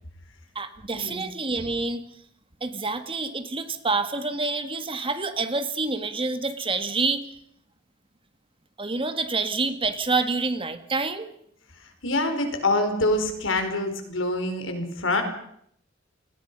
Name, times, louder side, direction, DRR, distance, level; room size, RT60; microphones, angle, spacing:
voice 1, 0.6-2.0 2.6-7.3 8.8-11.3, right 3 dB, 25° right, 9 dB, 1.9 m, -27 dB
voice 2, 12.0-15.2, left 2 dB, 70° left, 6 dB, 4.9 m, -25 dB
30.0 x 20.5 x 5.5 m, 0.70 s
head